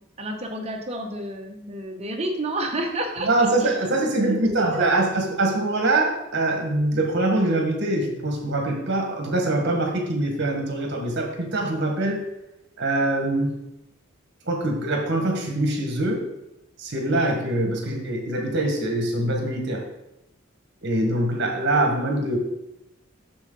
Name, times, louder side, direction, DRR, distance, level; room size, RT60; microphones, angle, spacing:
voice 1, 0.0-3.5 4.3-5.0, right 1 dB, 30° right, 3 dB, 1.0 m, -30 dB
voice 2, 3.2-12.2 12.8-13.6 14.5-16.2 16.8-19.8 20.8-22.4, right 2 dB, 55° right, 2 dB, 1.6 m, -23 dB
7.3 x 6.4 x 3.9 m, 0.89 s
head